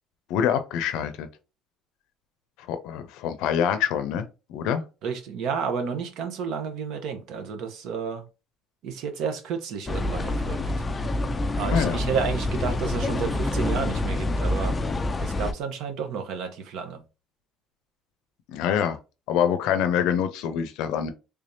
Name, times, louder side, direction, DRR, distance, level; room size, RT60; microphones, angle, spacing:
voice 1, 0.3-1.3 2.7-4.8 11.6-12.0 18.5-19.0 19.3-21.1, left 8 dB, 75° left, 0.5 m, -25 dB
voice 2, 5.0-8.2 8.8-10.6 11.5-14.8 15.2-17.0, right 6 dB, 65° right, 0.8 m, -31 dB
sound 1, 9.9-15.5, left 2 dB, 15° left, 0.3 m, -27 dB
3.4 x 3.3 x 2.6 m
cardioid pair, 150°, 0 cm